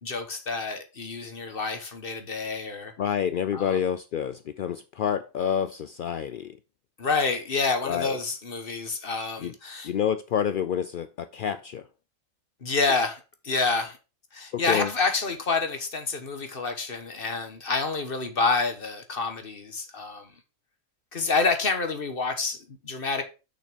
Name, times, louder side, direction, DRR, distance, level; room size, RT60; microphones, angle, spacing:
voice 1, 0.0-2.9 3.5-3.8 7.0-9.9 12.6-14.0 14.3-20.3 21.1-23.2, left 4 dB, 45° left, 1.4 m, -28 dB
voice 2, 3.0-6.6 7.8-8.2 9.4-9.5 9.8-11.8 14.5-14.9, left 8 dB, 80° left, 0.4 m, -28 dB
6.6 x 6.0 x 5.1 m
omnidirectional pair, 1.4 m